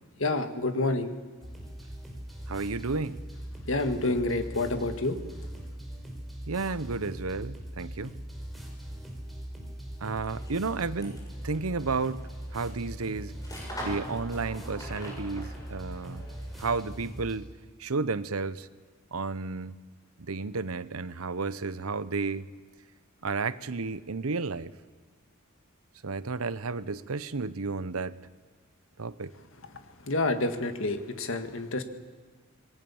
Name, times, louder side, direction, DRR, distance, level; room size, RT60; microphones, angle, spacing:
voice 1, 0.2-1.1 3.7-5.2 30.0-31.8, left 2 dB, 65° left, 8 dB, 1.9 m, -28 dB
sound 1, 1.4-17.4, right 1 dB, ahead, 4.9 m, -41 dB
voice 2, 2.5-3.2 6.5-8.2 9.6-9.7 10.0-13.4 13.8-16.2 16.6-17.5 17.8-18.7 19.1-19.7 20.2-22.5 23.2-24.7 26.0-28.2 29.0-29.3, right 4 dB, 90° right, 16 dB, 0.9 m, -32 dB
sound 2, 10.1-16.9, equal, 15° left, 6.9 m, -45 dB
27.0 x 21.5 x 7.2 m, 1.4 s
head